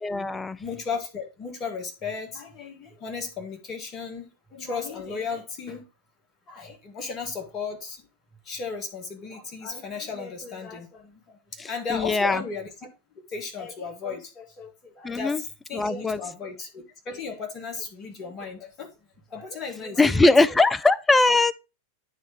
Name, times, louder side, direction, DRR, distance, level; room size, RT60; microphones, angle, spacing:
voice 1, 0.0-0.6 11.6-12.4 15.0-15.4 15.7-16.2 20.0-21.5, left 3 dB, 10° left, 0.4 m, -21 dB
voice 2, 0.6-5.8 6.5-8.0 8.4-12.7 13.3-18.9 19.3-20.3, left 5 dB, 30° left, 1.7 m, -35 dB
9.2 x 3.1 x 4.9 m
figure-of-eight pair, 90°, 0 cm